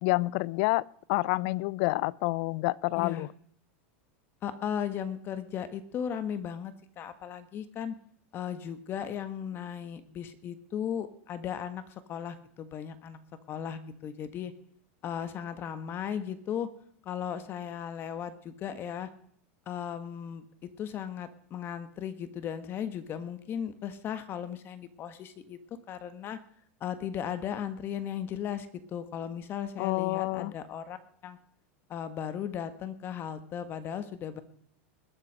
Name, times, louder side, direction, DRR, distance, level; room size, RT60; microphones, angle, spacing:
voice 1, 0.0-3.3 29.8-30.5, left 22 dB, 55° left, 24 dB, 0.5 m, -28 dB
voice 2, 3.0-3.3 4.4-7.9 8.3-13.2 13.5-14.5 15.0-16.7 17.0-19.1 19.6-20.4 20.8-25.6 25.9-26.4 26.8-31.0 31.2-31.4 31.9-34.4, left 8 dB, 35° left, 12 dB, 1.5 m, -36 dB
20.5 x 7.9 x 6.4 m, 0.63 s
supercardioid pair, 135°, 7 cm